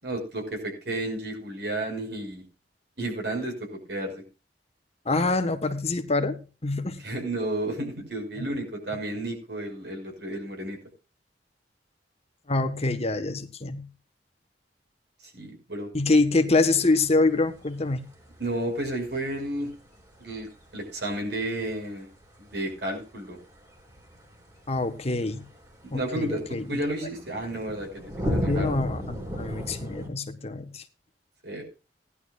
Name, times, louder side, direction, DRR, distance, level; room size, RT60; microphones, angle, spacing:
voice 1, 0.0-2.4 3.0-4.2 7.0-10.8 15.3-15.9 18.4-19.7 20.2-22.1 22.4-23.4 25.9-26.4 26.7-27.9 28.3-28.8 31.4-31.6, right 1 dB, 65° right, 3 dB, 5.9 m, -32 dB
voice 2, 5.0-7.0 8.4-8.5 12.5-13.9 15.9-18.1 24.7-25.4 25.9-26.8 28.5-30.8, left 3 dB, 35° left, 8 dB, 1.4 m, -25 dB
sound 1, 16.9-30.1, equal, 20° right, 3.8 m, -37 dB
18.5 x 11.5 x 2.5 m, 0.33 s
head